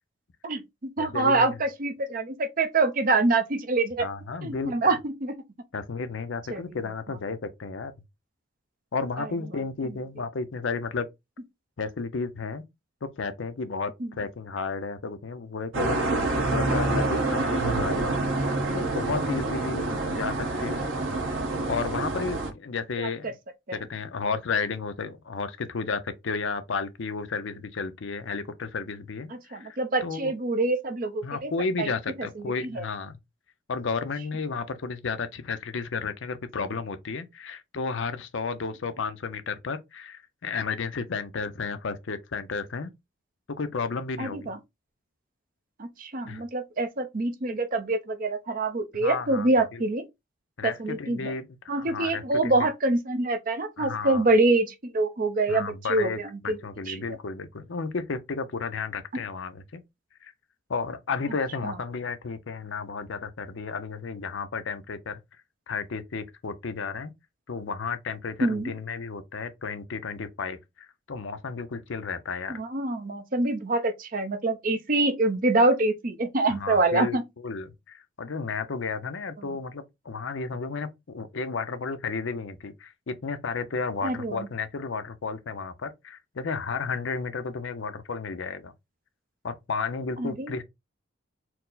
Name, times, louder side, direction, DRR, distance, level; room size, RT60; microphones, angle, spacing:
voice 1, 0.4-4.1 4.4-5.4 6.5-6.6 9.2-9.3 14.0-14.1 23.0-23.1 23.7-23.8 29.3-31.5 31.8-31.9 32.7-32.8 44.2-44.6 45.8-50.0 50.6-51.4 51.7-56.6 56.9-57.2 61.6-61.7 68.4-68.7 72.5-77.2 79.4-79.5 84.0-84.5 90.2-90.5, right 2 dB, 40° right, 0.6 m, -25 dB
voice 2, 1.0-1.5 4.0-4.9 5.7-7.9 8.9-11.1 11.8-12.6 13.0-16.0 16.5-18.2 18.7-20.9 21.7-23.3 23.7-30.3 31.2-33.2 33.7-42.9 43.6-44.5 46.2-46.4 49.0-49.8 50.6-52.7 53.8-54.2 55.5-59.8 60.2-60.3 60.7-65.2 65.7-67.1 67.5-72.5 76.6-88.7 89.4-90.6, left 4 dB, 65° left, 0.6 m, -33 dB
sound 1, 15.7-22.5, right 2 dB, 75° right, 1.1 m, -27 dB
4.5 x 2.1 x 3.8 m
head